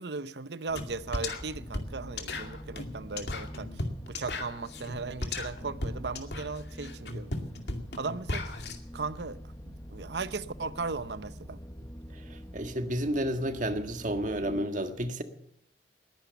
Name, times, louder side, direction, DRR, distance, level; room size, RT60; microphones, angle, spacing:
voice 1, 0.0-3.7 4.1-7.3 8.0-8.6 8.9-9.4 9.6-11.6, right 4 dB, 75° right, 0.8 m, -37 dB
sound 1, 0.7-14.7, equal, 15° left, 1.0 m, -46 dB
sound 2, 0.8-8.8, left 2 dB, 70° left, 2.3 m, -35 dB
voice 2, 12.3-15.2, right 1 dB, 45° right, 1.7 m, -31 dB
20.5 x 10.0 x 7.0 m
head